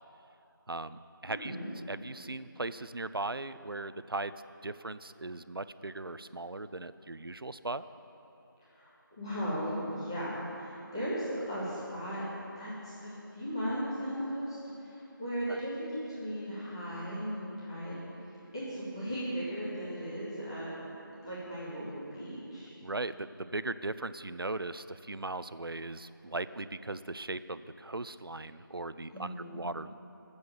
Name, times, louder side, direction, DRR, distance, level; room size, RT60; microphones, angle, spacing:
voice 1, 0.7-1.6 1.9-4.4 4.6-7.8 15.5-15.6 22.8-30.0, right 2 dB, 85° right, 13 dB, 0.6 m, -38 dB
voice 2, 8.7-12.2 12.6-18.0 18.5-20.7 21.2-22.7 29.1-29.5, equal, 10° left, -11 dB, 2.0 m, -37 dB
20.5 x 8.0 x 7.1 m, 2.9 s
figure-of-eight pair, 175°, 12 cm